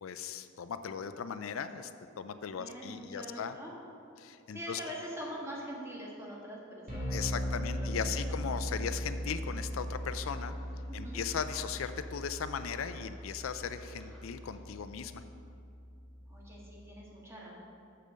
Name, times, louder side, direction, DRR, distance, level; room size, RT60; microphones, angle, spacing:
voice 1, 0.0-1.9 2.2-3.6 4.2-4.8 7.1-10.6 10.9-15.2, left 7 dB, 85° left, 11 dB, 0.4 m, -38 dB
voice 2, 2.6-3.8 4.5-8.4 10.9-11.2 16.3-17.5, equal, 15° right, -4 dB, 1.6 m, -44 dB
sound 1, 6.9-16.9, equal, 45° right, 2.3 m, -39 dB
sound 2, 7.2-14.6, equal, 5° left, 1.4 m, -60 dB
6.8 x 6.7 x 6.4 m, 2.6 s
head